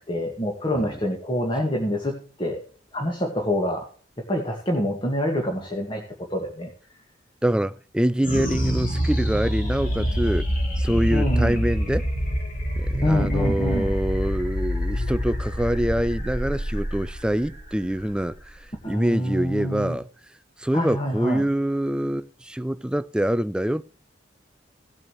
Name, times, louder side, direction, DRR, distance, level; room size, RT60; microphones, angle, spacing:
voice 1, 0.0-2.6 2.9-3.9 4.3-6.7 11.1-11.6 13.0-13.9 18.8-20.0 20.7-21.4, equal, 25° left, 1.8 m, -26 dB
voice 2, 7.4-10.5 10.8-12.1 12.8-20.1 20.6-23.8, right 1 dB, 5° right, 0.4 m, -25 dB
sound 1, 8.2-18.9, equal, 45° left, 2.6 m, -26 dB
17.5 x 7.4 x 3.1 m
head